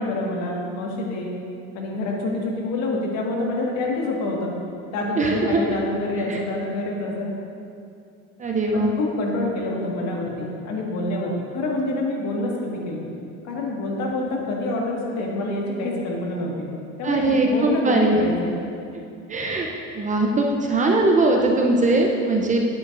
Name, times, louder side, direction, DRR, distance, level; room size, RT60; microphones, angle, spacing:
voice 1, 0.0-1.3 1.7-4.5 4.9-7.3 8.7-13.1 13.4-16.7 17.0-18.6, left 2 dB, 55° left, -2 dB, 1.7 m, -27 dB
voice 2, 5.2-5.6 6.3-6.4 8.4-8.9 17.0-18.3 19.3-19.7 20.0-22.6, right 2 dB, 25° right, 1 dB, 0.6 m, -20 dB
10.0 x 8.1 x 2.6 m, 2.5 s
cardioid pair, 130°, 32 cm